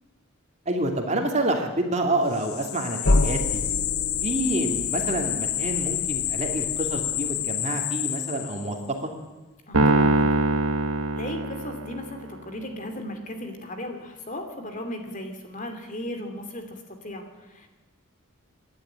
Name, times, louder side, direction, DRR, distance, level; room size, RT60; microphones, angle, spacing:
voice 1, 0.7-3.6 4.2-8.8, right 1 dB, 30° right, 3 dB, 2.6 m, -28 dB
sound 1, 2.3-8.9, left 13 dB, 80° left, 1.1 m, -29 dB
sound 2, 3.0-7.7, left 2 dB, 55° left, 1.2 m, -29 dB
voice 2, 9.7-10.5 11.1-17.7, left 1 dB, 35° left, 5 dB, 2.8 m, -36 dB
Piano, 9.7-12.2, right 2 dB, 75° right, 1.7 m, -22 dB
27.5 x 11.0 x 8.9 m, 1.1 s
head